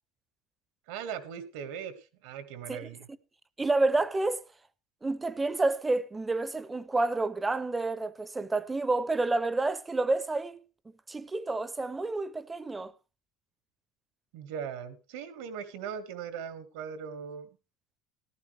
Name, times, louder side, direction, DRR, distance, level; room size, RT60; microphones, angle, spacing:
voice 1, 0.9-1.9 2.2-3.1 14.3-17.5, right 7 dB, 80° right, 1.8 m, -39 dB
voice 2, 3.6-4.4 5.0-10.6 11.1-12.9, right 2 dB, 10° right, 0.5 m, -29 dB
14.5 x 13.0 x 3.3 m
cardioid pair, 145°, 0 cm